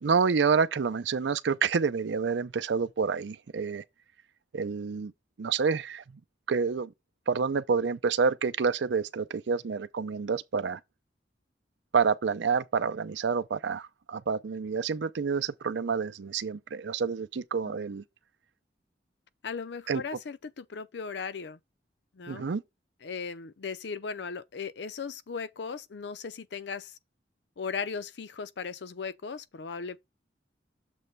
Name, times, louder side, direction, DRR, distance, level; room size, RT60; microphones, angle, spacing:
voice 1, 0.0-3.8 4.5-5.1 5.4-6.0 6.5-6.9 7.3-10.8 11.9-18.0 19.9-20.0 22.3-22.6, right 5 dB, 80° right, 0.5 m, -28 dB
voice 2, 19.4-21.6 22.1-22.5 23.0-26.9 27.6-30.0, left 5 dB, 70° left, 0.5 m, -37 dB
7.0 x 3.1 x 5.2 m
head